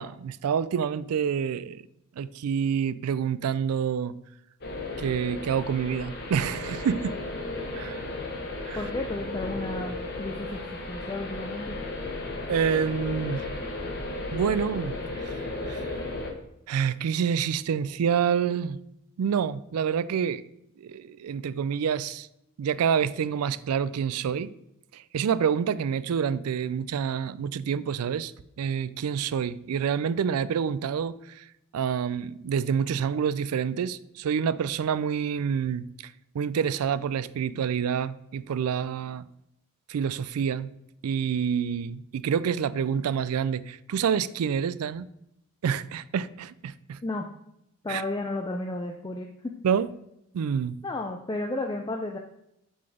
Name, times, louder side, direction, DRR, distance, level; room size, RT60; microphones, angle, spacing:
voice 1, 0.0-1.8 2.2-4.1 5.0-7.1 7.7-8.0 8.7-8.8 12.5-13.5 14.3-16.0 16.7-18.8 19.2-20.4 20.8-22.3 22.6-24.5 24.9-28.3 28.6-31.5 31.7-39.3 39.9-40.7 41.0-45.1 45.6-47.0 47.9-48.0 49.6-49.9 50.3-50.8, right 7 dB, 90° right, 0.4 m, -27 dB
sound 1, 4.6-16.3, left 2 dB, 45° left, 1.1 m, -34 dB
voice 2, 8.8-11.8 47.0-47.3 47.8-49.5 50.8-52.2, left 2 dB, 20° left, 0.4 m, -33 dB
7.6 x 4.0 x 4.9 m
head